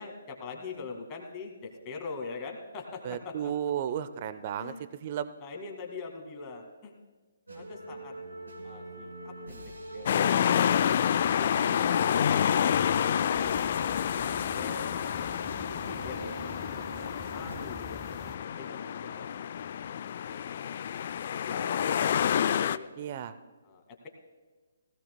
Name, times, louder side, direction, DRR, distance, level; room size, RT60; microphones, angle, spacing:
voice 1, 0.0-3.5 4.6-4.9 5.4-6.9 7.5-8.1 8.6-9.6 9.9-10.7 14.5-15.0 15.5-16.9 17.3-19.4 20.2-20.4 21.5-22.9 23.6-24.1, left 4 dB, 25° left, 3 dB, 1.9 m, -43 dB
voice 2, 3.0-4.7 5.0-5.3 23.0-23.4, right 9 dB, 40° right, 13 dB, 0.5 m, -33 dB
sound 1, 7.5-17.5, right 2 dB, 80° right, 4.3 m, -45 dB
sound 2, 10.1-22.8, left 9 dB, 45° left, 0.3 m, -28 dB
sound 3, 13.3-18.4, right 1 dB, 10° right, 0.9 m, -48 dB
18.5 x 16.5 x 2.2 m, 1.3 s
figure-of-eight pair, 135°, 0 cm